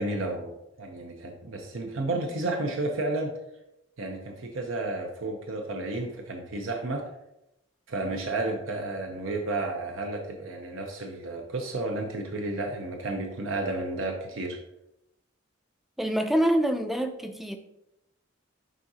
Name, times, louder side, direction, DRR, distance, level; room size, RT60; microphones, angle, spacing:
voice 1, 0.0-3.3 4.0-7.1 7.9-14.6, right 2 dB, 80° right, 2 dB, 0.7 m, -32 dB
voice 2, 16.0-17.6, right 1 dB, ahead, 6 dB, 0.4 m, -25 dB
10.5 x 3.7 x 2.8 m, 0.87 s
head